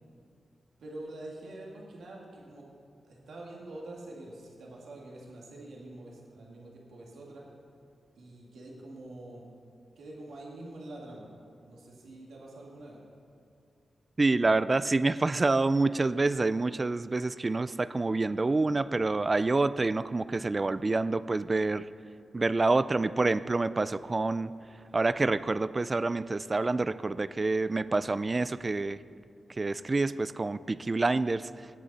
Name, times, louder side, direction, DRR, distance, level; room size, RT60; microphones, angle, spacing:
voice 1, 0.8-2.6 3.0-7.4 8.2-9.5 10.0-11.3 11.6-13.0, right 1 dB, 90° right, -3 dB, 2.0 m, -45 dB
voice 2, 14.2-21.8 22.3-24.5 24.9-29.0 29.6-31.5, right 3 dB, 30° right, 15 dB, 0.3 m, -27 dB
18.0 x 8.5 x 4.1 m, 2.4 s
cardioid pair, 85°, 0 cm